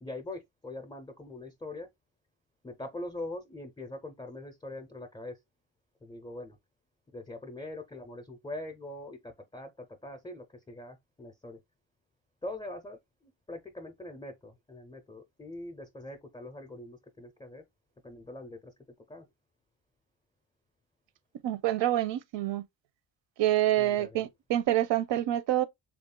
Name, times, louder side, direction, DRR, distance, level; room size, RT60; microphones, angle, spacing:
voice 1, 0.0-1.9 2.6-5.4 6.0-6.6 7.1-11.6 12.4-17.6 18.0-18.7 19.1-19.3 23.8-24.3, left 2 dB, 10° left, 0.4 m, -43 dB
voice 2, 21.4-22.6 23.4-25.6, right 13 dB, 75° right, 0.6 m, -27 dB
3.5 x 2.4 x 3.6 m
wide cardioid pair, 145°, 44 cm